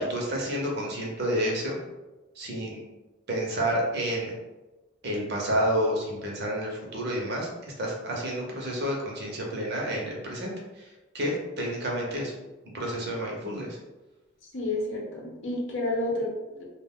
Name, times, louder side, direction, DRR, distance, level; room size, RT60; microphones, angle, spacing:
voice 1, 0.0-1.8 2.4-2.8 3.3-4.3 5.0-10.9 11.1-12.3 12.7-13.8, equal, 55° right, -2 dB, 0.7 m, -30 dB
voice 2, 14.5-16.6, left 2 dB, 60° left, -2 dB, 0.7 m, -30 dB
2.4 x 2.2 x 3.6 m, 1.1 s
head